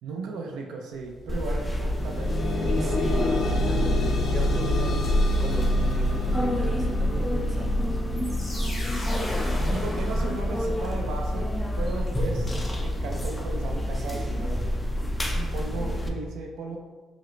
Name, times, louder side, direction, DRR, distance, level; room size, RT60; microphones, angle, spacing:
voice 1, 0.0-2.7 9.7-12.5 12.8-14.7 15.3-16.8, right 3 dB, 85° right, 1 dB, 0.4 m, -36 dB
sound 1, 1.0-1.1 1.5-12.5 13.3-13.4 13.9-14.0, left 1 dB, 75° left, 0.6 m, -28 dB
sound 2, 1.3-16.1, left 1 dB, 15° left, 0.5 m, -28 dB
voice 2, 2.7-5.1 5.4-8.0 13.9-14.3, right 1 dB, 35° right, 1 dB, 0.7 m, -36 dB
sound 3, 8.2-11.0, left 1 dB, 30° left, 1.1 m, -35 dB
4.8 x 2.0 x 3.1 m, 1.3 s
cardioid pair, 90°, 0 cm